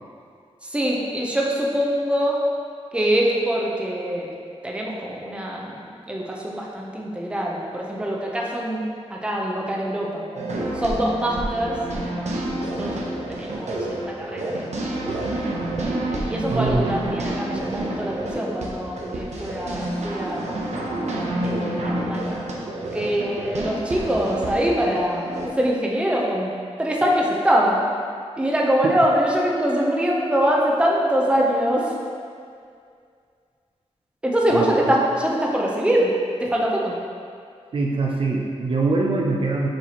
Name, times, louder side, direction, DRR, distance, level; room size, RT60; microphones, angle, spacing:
voice 1, 0.6-2.4 2.9-4.3 4.6-8.8 9.1-10.2 10.7-11.8 12.5-13.0 13.3-14.8 15.8-20.6 21.4-22.4 22.9-26.5 26.8-27.8 28.4-31.9 34.2-36.1 36.4-37.0, equal, 10° right, -3 dB, 0.7 m, -23 dB
sound 1, 10.3-25.5, right 1 dB, 85° right, 0.8 m, -29 dB
voice 2, 16.5-16.9 28.8-28.9 34.5-34.7 37.7-39.7, right 3 dB, 50° right, -1 dB, 0.5 m, -23 dB
7.3 x 4.4 x 2.9 m, 2.2 s
wide cardioid pair, 150°, 11 cm